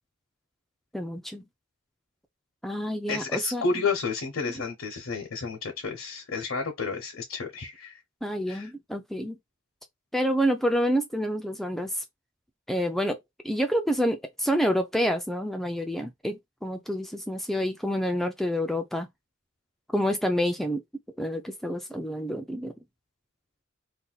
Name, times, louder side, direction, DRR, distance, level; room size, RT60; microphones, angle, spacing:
voice 1, 0.9-1.4 2.6-3.6 8.2-9.4 10.1-12.0 12.7-13.2 13.4-19.1 19.9-20.8 21.2-22.7, equal, ahead, 0.3 m, -28 dB
voice 2, 3.1-8.0 8.5-8.7, left 4 dB, 75° left, 0.8 m, -31 dB
2.6 x 2.2 x 3.9 m
head